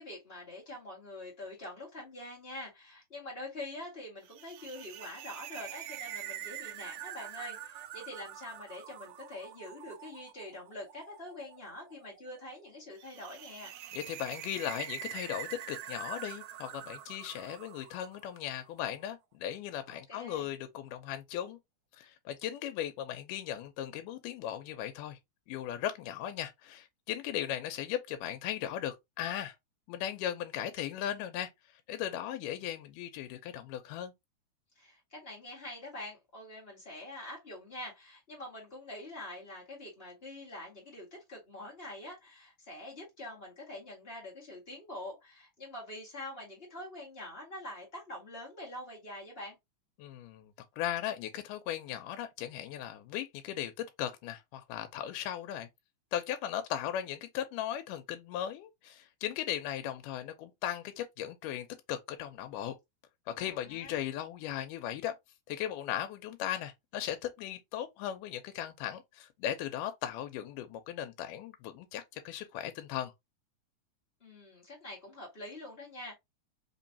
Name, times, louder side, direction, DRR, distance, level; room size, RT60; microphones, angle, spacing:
voice 1, 0.0-13.7 19.9-20.5 34.7-49.6 63.4-63.9 74.2-76.1, left 1 dB, 25° left, 1.3 m, -45 dB
sound 1, 4.3-18.6, right 12 dB, 80° right, 1.9 m, -45 dB
voice 2, 13.9-21.6 22.0-25.2 25.5-29.6 29.9-31.5 31.9-34.1 50.0-53.7 54.0-55.7 56.1-62.8 63.3-65.1 65.5-73.1, left 11 dB, 85° left, 2.2 m, -37 dB
5.0 x 3.0 x 2.7 m
omnidirectional pair, 3.7 m